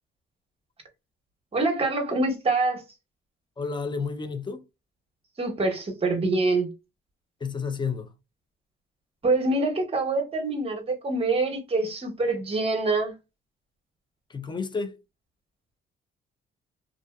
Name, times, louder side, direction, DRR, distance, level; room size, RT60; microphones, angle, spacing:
voice 1, 1.5-2.8 5.4-6.7 9.2-13.1, right 3 dB, 30° right, 1.0 m, -25 dB
voice 2, 3.6-4.6 7.4-8.1 14.3-15.0, left 5 dB, 25° left, 0.5 m, -31 dB
2.6 x 2.3 x 2.2 m
cardioid pair, 90°, 20 cm